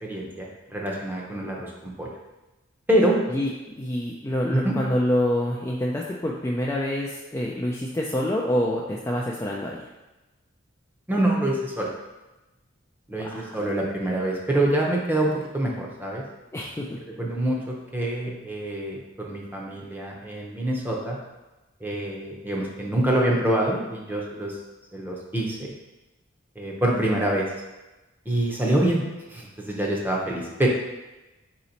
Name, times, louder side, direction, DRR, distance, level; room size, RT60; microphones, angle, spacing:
voice 1, 0.0-2.1 2.9-3.2 4.5-4.8 11.1-11.9 13.1-16.2 17.2-21.2 21.8-24.6 24.9-25.7 26.6-27.5 28.3-29.0 29.3-30.7, right 1 dB, 10° right, -2 dB, 0.7 m, -25 dB
voice 2, 3.3-9.8 13.6-13.7 16.5-16.9, left 1 dB, 15° left, -3 dB, 0.3 m, -26 dB
4.1 x 2.9 x 4.0 m, 1.0 s
head